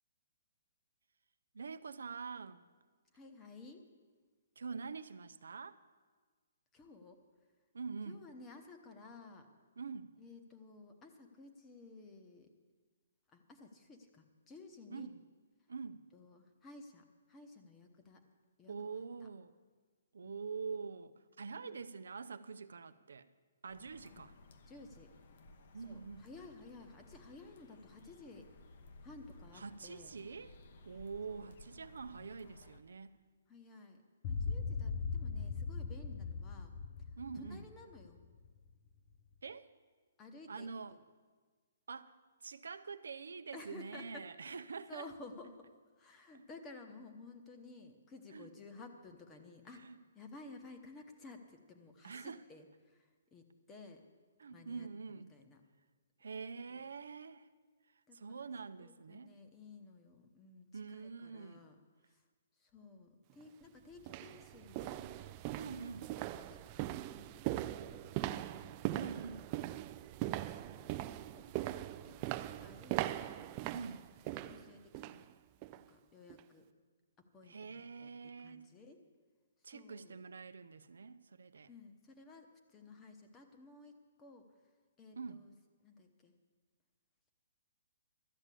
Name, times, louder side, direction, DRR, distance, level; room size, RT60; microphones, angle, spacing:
voice 1, 1.5-2.6 4.6-5.8 7.7-8.2 9.8-10.1 14.9-15.2 15.7-16.0 18.7-19.5 20.1-23.3 23.6-24.3 25.7-26.3 29.5-30.6 30.8-33.2 37.2-37.7 39.4-39.7 40.5-41.0 41.9-42.2 42.4-45.1 46.3-46.4 48.3-48.5 49.8-50.0 52.0-52.4 54.4-55.3 56.2-57.5 57.9-59.3 60.7-61.7 65.6-66.1 68.9-69.4 73.7-74.1 77.4-78.6 79.6-81.7 85.2-85.4, right 5 dB, 90° right, 11 dB, 0.6 m, -45 dB
voice 2, 3.1-3.9 6.7-7.2 8.0-9.5 10.2-12.5 13.3-15.1 16.1-18.2 18.6-19.3 20.2-20.4 21.6-21.7 24.7-25.1 25.8-28.5 29.0-30.1 31.3-31.5 33.5-36.7 37.3-38.2 40.2-40.7 43.5-44.2 44.9-49.9 50.1-54.0 54.5-54.9 55.1-55.6 56.7-56.8 58.1-58.5 58.8-61.8 62.1-62.2 62.6-65.3 65.6-68.8 70.5-71.0 71.3-71.7 72.0-73.1 74.4-75.3 75.7-76.7 77.3-79.0 79.6-80.2 81.7-83.9 84.2-84.5 85.0-85.5 85.8-86.3, left 3 dB, 15° left, 5 dB, 1.0 m, -55 dB
sound 1, 23.7-32.8, left 2 dB, 50° left, 1.0 m, -58 dB
sound 2, 34.2-38.6, left 5 dB, 35° left, 0.6 m, -39 dB
sound 3, 63.3-63.4 64.0-75.2 75.6-75.9 76.3-76.4, right 15 dB, 25° right, 0.3 m, -40 dB
12.5 x 7.3 x 8.3 m, 1.4 s
hypercardioid pair, 160°, 0 cm